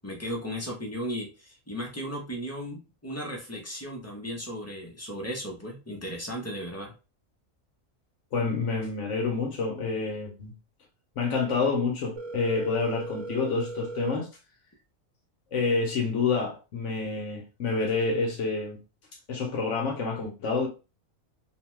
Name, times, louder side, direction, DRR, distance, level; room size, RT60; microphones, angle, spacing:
voice 1, 0.0-6.9, equal, 15° left, 0.5 m, -36 dB
voice 2, 8.3-10.5 11.2-14.3 15.5-18.8 19.3-20.7, left 4 dB, 70° left, 1.0 m, -28 dB
Telephone, 12.2-14.2, right 3 dB, 85° right, 1.1 m, -37 dB
2.7 x 2.2 x 3.0 m
omnidirectional pair, 1.4 m